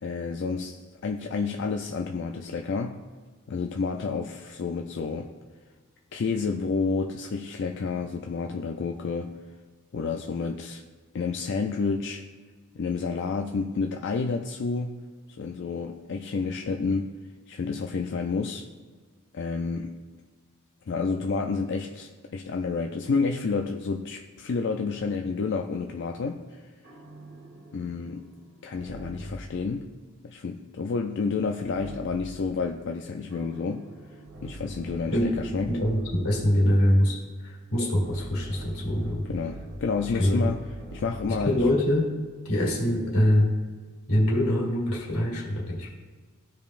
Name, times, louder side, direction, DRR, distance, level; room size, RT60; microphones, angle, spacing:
voice 1, 0.0-3.0 3.5-5.3 6.1-9.3 9.9-10.8 11.1-12.2 12.7-15.0 15.4-17.1 17.5-18.7 19.3-19.9 20.9-26.7 27.7-28.3 28.6-29.9 30.2-33.9 34.4-35.8 39.3-40.6 40.9-41.6, left 4 dB, 55° left, 3 dB, 0.4 m, -30 dB
sound 1, 26.8-29.6 31.6-32.5 33.3-36.3 37.9-41.8, equal, 55° right, 1.0 m, -41 dB
voice 2, 35.7-37.2 37.4-39.2 40.1-40.5 41.4-42.1 42.4-43.5 44.1-45.9, equal, 85° left, -2 dB, 2.3 m, -24 dB
14.5 x 5.2 x 2.5 m, 1.5 s
head